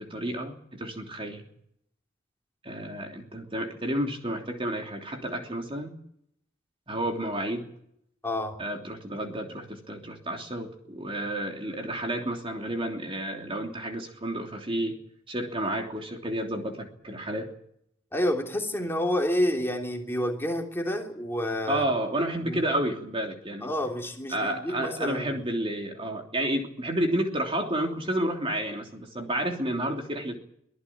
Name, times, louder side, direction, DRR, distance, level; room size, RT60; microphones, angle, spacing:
voice 1, 0.0-1.4 2.6-5.9 6.9-7.7 8.6-15.0 15.3-17.5 21.7-23.7 24.3-30.4, right 1 dB, 30° right, 3 dB, 3.1 m, -31 dB
voice 2, 8.2-8.6 18.1-21.9 22.4-22.6 23.6-25.4, equal, 10° left, 2 dB, 3.2 m, -29 dB
24.5 x 15.0 x 8.7 m, 0.73 s
head